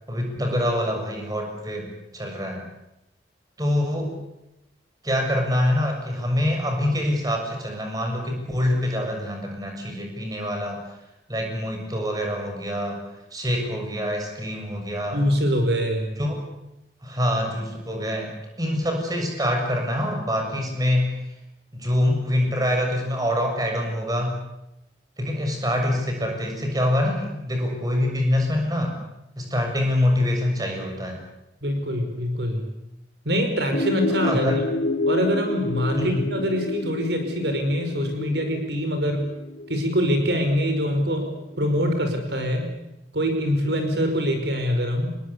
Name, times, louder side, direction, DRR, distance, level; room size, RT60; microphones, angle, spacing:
voice 1, 0.1-2.7 3.6-4.2 5.0-10.8 11.3-15.2 16.2-16.4 17.0-21.2 21.7-24.4 25.2-29.0 29.4-31.2 34.2-34.6 36.0-36.2, left 1 dB, 20° right, 2 dB, 7.0 m, -25 dB
voice 2, 15.1-16.1 31.6-32.7 33.3-34.6 35.1-39.3 39.7-41.3 41.6-42.7 43.1-45.2, equal, 70° right, 5 dB, 5.3 m, -24 dB
sound 1, 33.7-41.4, left 2 dB, 65° left, 6.7 m, -29 dB
29.0 x 21.0 x 8.3 m, 0.87 s
head